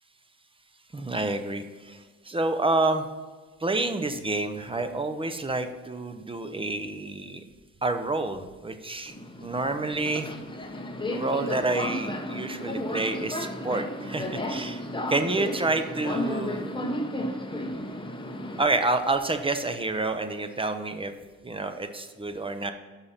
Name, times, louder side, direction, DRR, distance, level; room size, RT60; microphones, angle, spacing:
voice 1, 0.9-3.1 3.6-7.4 7.8-9.1 9.4-10.3 11.1-14.8 15.1-16.7 18.6-21.1 21.4-22.7, right 2 dB, 15° right, 7 dB, 0.8 m, -28 dB
Subway metro underground, 9.1-18.6, left 1 dB, 15° left, 1.0 m, -33 dB
6.6 x 5.7 x 5.6 m, 1.4 s
cardioid pair, 90°, 30 cm